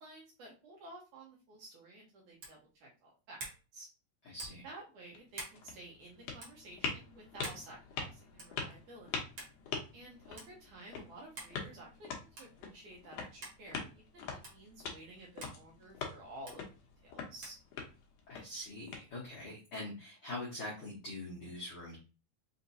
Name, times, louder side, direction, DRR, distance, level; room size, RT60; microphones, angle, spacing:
voice 1, 0.0-3.4 3.7-3.9 4.6-9.2 9.9-16.6 17.0-17.6, right 2 dB, 70° right, -3 dB, 2.0 m, -52 dB
sound 1, 2.4-2.6 3.4-3.6 4.4-4.6 5.3-5.6 6.4-6.5 7.4-7.6 8.4-8.6 9.4-9.6 10.4-10.5 11.4-11.6 12.3-12.6 13.4-13.6 14.4-14.6 15.4-15.6 16.5-16.6 17.4-17.6, right 2 dB, 85° right, 1.0 m, -46 dB
voice 2, 4.2-4.7 18.3-21.9, left 1 dB, 75° left, -5 dB, 1.3 m, -43 dB
sound 2, 5.0-19.5, left 5 dB, 90° left, 1.5 m, -45 dB
5.7 x 2.8 x 2.7 m, 0.32 s
omnidirectional pair, 4.4 m